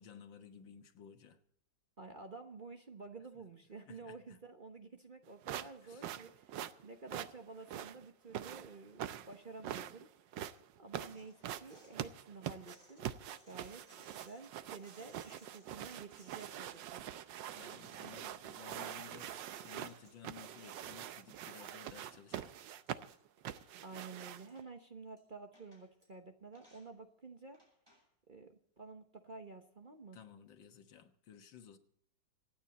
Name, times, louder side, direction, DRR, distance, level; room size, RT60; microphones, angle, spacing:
voice 1, 0.0-1.4 3.8-4.4 5.8-6.1 17.5-22.5 30.1-31.8, left 8 dB, 85° left, 7 dB, 2.0 m, -56 dB
voice 2, 2.0-13.1 13.5-13.8 14.1-17.1 23.8-27.6 28.3-30.2, right 4 dB, 35° right, 5 dB, 0.9 m, -51 dB
sound 1, 5.4-24.6, right 11 dB, 80° right, 1.4 m, -44 dB
sound 2, 11.0-12.0 12.5-22.0 22.3-23.2 23.4-24.7 25.2-25.3 25.5-26.1 26.5-26.9 27.5-28.0, equal, 10° right, 6.9 m, -66 dB
25.5 x 9.4 x 4.2 m, 0.74 s
omnidirectional pair, 2.0 m